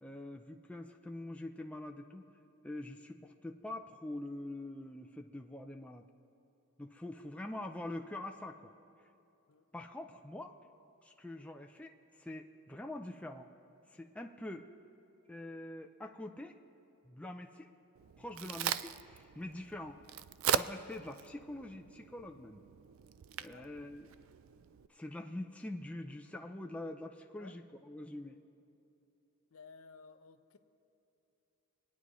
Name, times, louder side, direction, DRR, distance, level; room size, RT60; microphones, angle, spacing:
voice 1, 0.0-2.3 2.6-6.1 6.8-8.7 9.7-10.5 11.0-13.5 13.9-14.7 15.3-16.6 17.1-17.7 18.2-20.0 20.4-22.6 23.4-24.1 24.9-28.4, left 1 dB, 5° left, 3 dB, 0.4 m, -45 dB
Crack, 18.0-24.9, right 9 dB, 65° right, 0.3 m, -40 dB
voice 2, 29.5-30.6, left 4 dB, 65° left, 9 dB, 0.6 m, -56 dB
26.5 x 9.5 x 3.1 m, 2.9 s
head